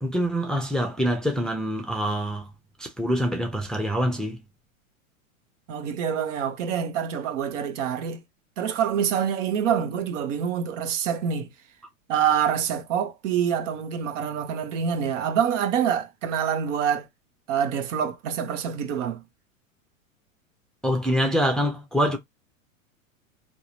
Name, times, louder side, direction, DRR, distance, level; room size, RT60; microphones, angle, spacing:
voice 1, 0.0-2.5 2.8-4.4 20.8-22.2, equal, ahead, 0.6 m, -25 dB
voice 2, 5.7-8.2 8.6-11.5 12.1-17.1 17.5-19.2, right 8 dB, 60° right, 1.1 m, -26 dB
3.7 x 2.6 x 3.0 m
hypercardioid pair, 105°, 41 cm